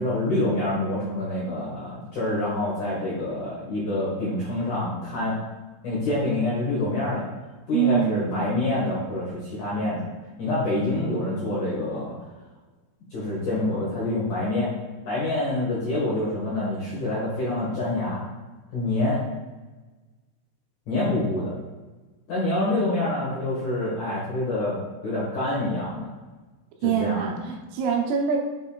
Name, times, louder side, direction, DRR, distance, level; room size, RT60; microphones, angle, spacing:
voice 1, 0.0-5.4 5.8-7.2 7.7-10.0 10.4-12.1 13.1-14.7 15.1-18.2 18.7-19.2 20.9-21.5 22.3-24.8 25.0-26.1 26.8-27.4, left 2 dB, 60° left, -8 dB, 2.2 m, -26 dB
voice 2, 7.7-8.5 26.8-28.4, right 7 dB, 80° right, 1 dB, 3.3 m, -24 dB
8.0 x 5.3 x 2.3 m, 1.2 s
omnidirectional pair, 5.8 m